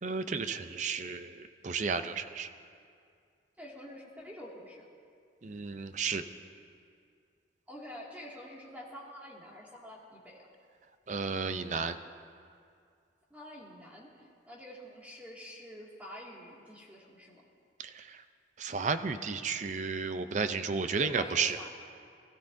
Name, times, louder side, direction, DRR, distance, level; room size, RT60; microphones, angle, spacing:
voice 1, 0.0-2.5 5.4-6.2 11.1-12.0 17.8-18.0 18.6-21.6, right 5 dB, 40° right, 10 dB, 0.5 m, -33 dB
voice 2, 3.6-4.8 7.7-10.5 13.3-14.1 14.5-17.5 21.0-21.7, equal, 10° right, -4 dB, 2.2 m, -47 dB
23.0 x 14.0 x 2.7 m, 2.3 s
head